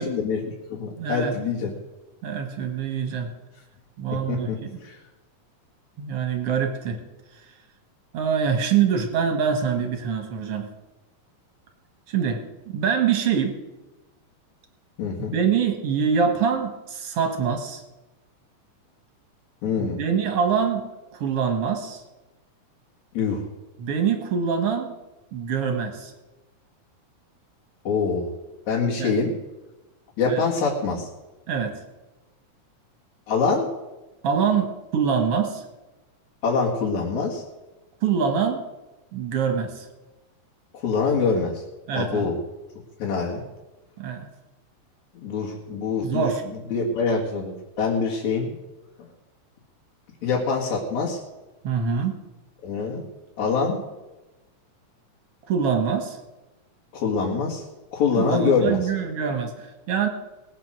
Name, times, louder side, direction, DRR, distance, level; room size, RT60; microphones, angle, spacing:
voice 1, 0.0-1.7 4.3-4.6 4.8-4.9 15.0-15.3 19.6-20.0 23.1-23.4 27.8-28.3 28.7-29.3 30.2-31.1 33.3-33.7 36.4-37.4 40.7-41.6 41.9-42.4 43.0-43.4 45.2-46.3 46.7-48.5 50.2-51.2 52.6-53.0 53.4-53.8 56.9-57.6 57.9-58.8, left 4 dB, 65° left, -4 dB, 3.1 m, -24 dB
voice 2, 1.0-1.3 2.2-3.3 4.0-4.8 6.0-7.0 8.1-10.7 12.1-13.6 15.3-17.8 19.8-22.0 23.8-24.9 25.3-26.1 29.0-29.2 30.3-30.4 31.5-31.7 34.2-35.6 38.0-38.6 39.1-39.9 41.9-42.3 44.0-44.3 46.0-46.4 51.6-52.2 55.5-56.2 58.2-60.1, right 6 dB, 55° right, 5 dB, 2.4 m, -24 dB
19.5 x 8.6 x 6.2 m, 1.1 s
omnidirectional pair, 3.6 m